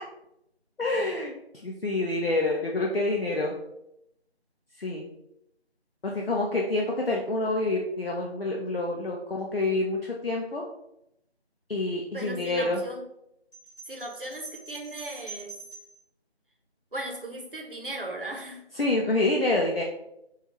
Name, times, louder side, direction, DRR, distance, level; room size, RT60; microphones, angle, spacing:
voice 1, 0.8-1.3 1.6-3.5 4.8-5.1 6.0-10.6 11.7-12.8 18.8-19.8, left 2 dB, 60° left, -1 dB, 0.6 m, -27 dB
voice 2, 12.1-13.1 13.9-15.5 16.9-18.6, right 1 dB, 55° right, 1 dB, 0.8 m, -37 dB
sound 1, 13.5-16.0, right 4 dB, ahead, 1.1 m, -45 dB
4.5 x 2.4 x 2.9 m, 0.82 s
figure-of-eight pair, 170°, 33 cm